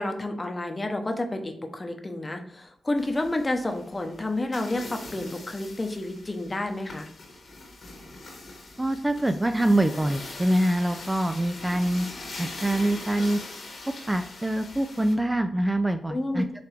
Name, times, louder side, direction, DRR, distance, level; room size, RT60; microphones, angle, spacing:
voice 1, 0.0-7.1 16.1-16.5, left 2 dB, 30° left, 5 dB, 0.8 m, -30 dB
sound 1, 3.0-15.1, left 2 dB, 65° left, 1.4 m, -42 dB
voice 2, 8.8-12.1 12.4-13.4 14.1-16.5, right 1 dB, 15° right, 7 dB, 0.3 m, -25 dB
4.8 x 3.3 x 3.2 m, 0.62 s
cardioid pair, 60°, 0 cm